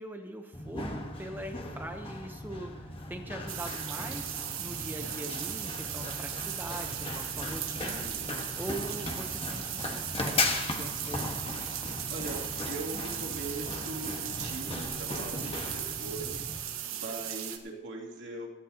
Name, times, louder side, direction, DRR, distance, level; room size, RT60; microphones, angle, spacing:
voice 1, 0.0-8.1 8.6-11.4, right 1 dB, 10° right, 5 dB, 0.9 m, -42 dB
Run, 0.5-16.6, left 2 dB, 25° left, 1.3 m, -37 dB
sound 1, 3.5-17.6, right 11 dB, 85° right, 1.3 m, -37 dB
voice 2, 8.0-8.4 11.8-18.5, right 2 dB, 60° right, -2 dB, 2.8 m, -41 dB
18.0 x 14.0 x 2.9 m, 1.2 s
head